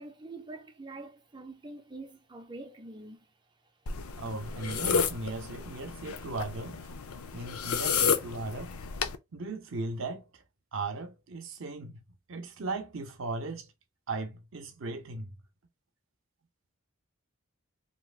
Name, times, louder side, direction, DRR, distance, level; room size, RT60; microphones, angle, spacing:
voice 1, 0.0-3.3, right 2 dB, 20° right, 0.5 m, -45 dB
sound 1, 3.9-9.2, left 6 dB, 85° left, 0.5 m, -32 dB
voice 2, 4.2-6.9 7.3-8.7 9.3-10.4 10.7-12.0 12.3-13.7 14.1-15.3, right 3 dB, 65° right, 0.6 m, -37 dB
3.3 x 2.8 x 2.4 m
head